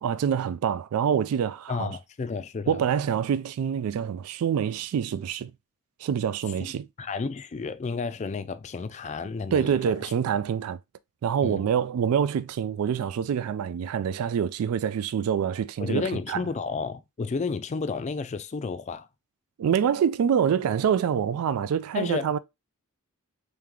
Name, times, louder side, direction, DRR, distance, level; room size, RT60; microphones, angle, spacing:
voice 1, 0.0-1.9 2.7-5.5 6.0-6.9 9.5-10.8 11.2-16.4 19.6-22.4, right 8 dB, 80° right, 0.3 m, -26 dB
voice 2, 1.7-2.8 6.6-6.7 7.0-10.0 11.4-11.6 15.8-19.1 21.9-22.3, left 4 dB, 30° left, 0.3 m, -31 dB
3.3 x 3.1 x 3.6 m
head